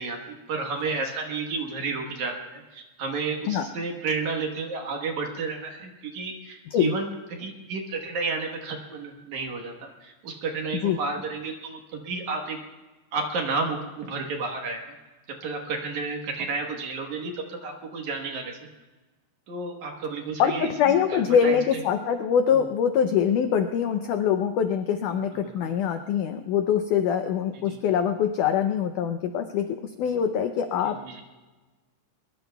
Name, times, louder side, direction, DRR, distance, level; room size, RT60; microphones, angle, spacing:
voice 1, 0.0-12.6 13.1-15.0 15.4-18.6 19.5-20.7 21.1-21.8 25.4-25.5 27.7-27.8 31.0-31.2, right 4 dB, 60° right, 2 dB, 2.3 m, -31 dB
voice 2, 20.4-31.0, left 8 dB, 85° left, 7 dB, 1.8 m, -24 dB
22.5 x 22.0 x 2.3 m, 1.2 s
omnidirectional pair, 4.4 m